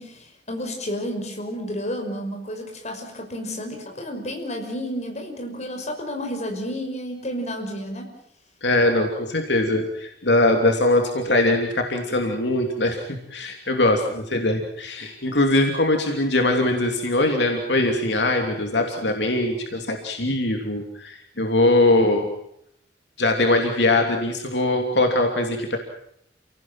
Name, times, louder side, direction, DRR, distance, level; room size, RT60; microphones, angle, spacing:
voice 1, 0.0-8.1, equal, 40° left, 3 dB, 5.7 m, -31 dB
voice 2, 8.6-22.3 23.2-25.8, left 2 dB, 75° left, 3 dB, 3.1 m, -21 dB
29.0 x 18.5 x 7.6 m, 0.72 s
head